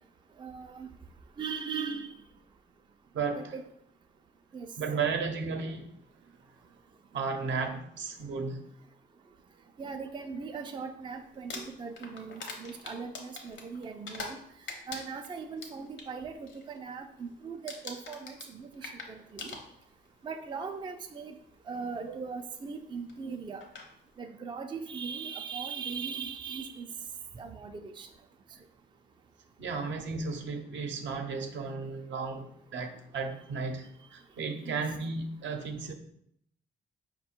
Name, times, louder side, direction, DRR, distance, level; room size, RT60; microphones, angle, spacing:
voice 1, 0.4-0.9 1.4-2.1 3.3-3.6 4.5-4.7 9.8-14.4 14.9-19.5 20.2-21.3 21.7-23.6 24.2-26.9 27.3-28.1 34.6-34.8, right 5 dB, 25° right, 5 dB, 0.4 m, -39 dB
voice 2, 3.1-3.5 4.8-5.9 7.1-8.6 23.3-23.4 29.6-35.9, right 4 dB, 70° right, 4 dB, 0.7 m, -34 dB
Crumpling crinkling, 11.3-14.4 14.7-16.1 16.5-16.8 17.0-17.4 17.7-20.1 21.0-21.1 23.1-23.2 23.6-23.9, left 3 dB, 70° left, 0.8 m, -43 dB
4.8 x 2.2 x 4.3 m, 0.72 s
cardioid pair, 90°, 20 cm